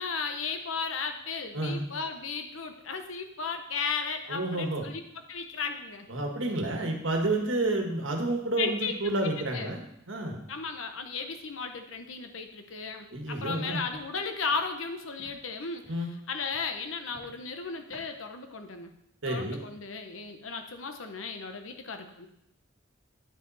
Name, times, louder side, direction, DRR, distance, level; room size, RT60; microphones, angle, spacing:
voice 1, 0.0-6.1 8.6-8.9 9.2-9.7 10.5-18.9 19.2-22.3, left 5 dB, 85° left, 6 dB, 1.0 m, -35 dB
voice 2, 1.5-1.9 4.3-4.8 6.1-10.4 13.1-13.8 15.9-16.1 19.2-19.6, right 2 dB, 75° right, 2 dB, 1.4 m, -30 dB
Walk footsteps, 13.2-13.3 13.8-14.0 14.5-14.6 15.2-15.3 15.8-16.1 16.5-16.7 17.1-17.4 17.9-18.1, equal, 5° left, 2.4 m, -53 dB
9.7 x 5.7 x 4.1 m, 0.77 s
head